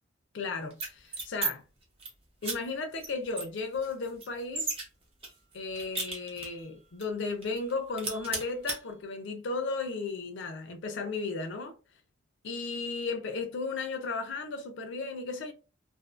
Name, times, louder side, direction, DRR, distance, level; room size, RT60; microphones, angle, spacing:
voice 1, 0.3-1.6 2.4-4.7 5.5-11.8 12.4-15.5, left 4 dB, 70° left, 0.4 m, -35 dB
sound 1, 0.7-1.5 1.8-2.1 2.4-2.6 3.0-3.1 3.4-4.8 5.2-6.6 7.0-7.1 7.4-7.7 8.0-8.8, right 3 dB, 30° right, 0.6 m, -35 dB
2.4 x 2.4 x 2.3 m
head